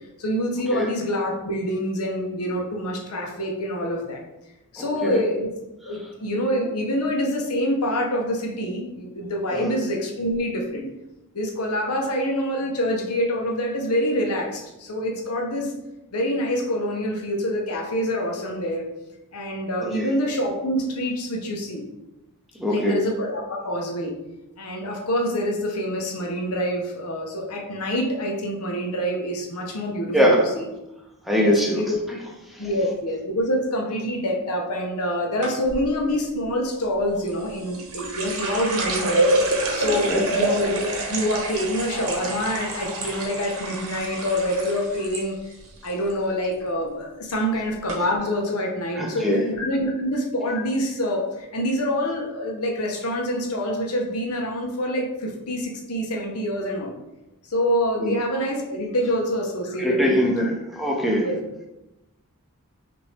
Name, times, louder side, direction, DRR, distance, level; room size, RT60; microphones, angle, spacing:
voice 1, 0.2-4.2 4.7-5.5 5.8-10.9 11.3-15.7 16.1-18.8 19.3-21.8 22.7-24.1 24.6-30.6 31.4-32.0 32.6-39.3 39.7-45.4 45.8-56.9 57.5-60.5 61.2-61.4, equal, 80° left, 0 dB, 0.9 m, -26 dB
voice 2, 4.8-5.2 9.5-9.7 19.9-20.1 22.6-23.0 30.1-30.4 31.3-31.8 40.1-40.3 48.9-49.4 58.0-58.1 59.8-61.3, equal, ahead, -2 dB, 0.6 m, -22 dB
sound 1, 35.4-35.8 37.3-45.2 45.5-46.1 46.4-46.8 47.5-47.6 47.9-48.0, right 2 dB, 75° right, 1.0 m, -27 dB
5.7 x 2.7 x 3.3 m, 0.96 s
head